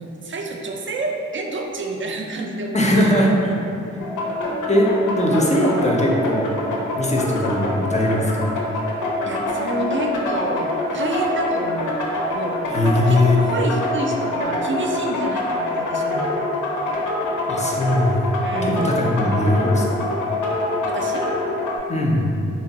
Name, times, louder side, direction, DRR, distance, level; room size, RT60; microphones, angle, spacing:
voice 1, 0.0-3.2 9.2-12.0 12.3-12.6 13.1-16.4 18.4-18.9 20.9-21.3, right 2 dB, 40° right, 1 dB, 0.4 m, -28 dB
voice 2, 2.7-3.6 4.7-6.5 7.0-8.5 12.7-13.4 17.5-20.1 21.9-22.3, left 1 dB, 25° left, -2 dB, 0.4 m, -20 dB
sound 1, 4.0-21.8, left 2 dB, 80° left, 0.5 m, -25 dB
2.9 x 2.1 x 2.7 m, 2.6 s
cardioid pair, 40°, 30 cm